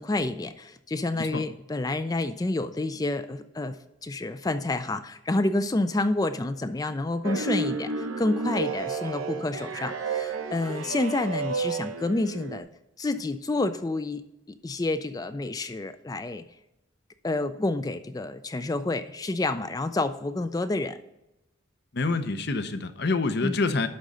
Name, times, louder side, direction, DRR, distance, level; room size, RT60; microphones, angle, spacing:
voice 1, 0.0-12.7 13.0-14.2 14.5-16.4 17.2-21.0 23.4-23.6, left 2 dB, 20° left, 11 dB, 0.3 m, -29 dB
sound 1, 7.2-12.6, right 4 dB, 90° right, 1.0 m, -31 dB
voice 2, 21.9-23.9, left 3 dB, 55° left, 10 dB, 0.7 m, -27 dB
11.0 x 3.8 x 5.4 m, 0.93 s
head